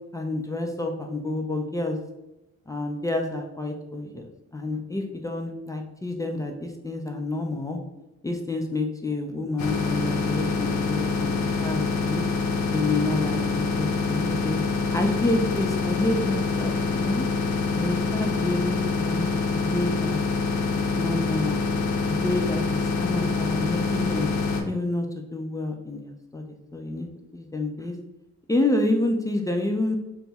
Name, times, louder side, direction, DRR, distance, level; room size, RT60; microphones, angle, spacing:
voice 1, 0.1-2.0 2.7-7.8 8.2-12.2 12.7-14.6 14.9-17.3 17.8-20.2 20.7-21.6 22.0-24.3 24.7-27.1 27.3-27.9 28.5-30.0, left 2 dB, 10° left, 2 dB, 0.4 m, -29 dB
sound 1, 9.6-24.6, left 4 dB, 70° left, 0.6 m, -26 dB
4.0 x 2.0 x 3.5 m, 0.93 s
cardioid pair, 90°, 30 cm